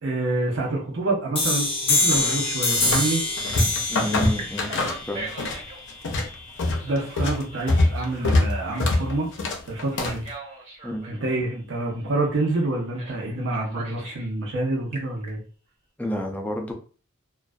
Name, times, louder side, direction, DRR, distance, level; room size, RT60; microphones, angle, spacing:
voice 1, 0.0-3.2 6.8-9.3 9.7-10.2 11.1-15.4, right 2 dB, 65° right, -2 dB, 0.6 m, -27 dB
sound 1, 1.3-6.8, left 2 dB, 30° left, 0.7 m, -26 dB
Telephone, 1.3-3.5 4.1-5.8 6.8-9.0 9.9-11.2 13.0-13.2 13.5-14.3 14.7-15.3, right 3 dB, 35° right, 0.7 m, -41 dB
sound 2, 2.1-3.1 3.4-5.6 5.9-10.3, left 2 dB, 60° left, 0.5 m, -24 dB
voice 2, 3.9-4.7 5.1-5.3 10.8-11.0 16.0-16.7, equal, 10° left, 2 dB, 0.4 m, -30 dB
2.5 x 2.2 x 2.2 m, 0.39 s
head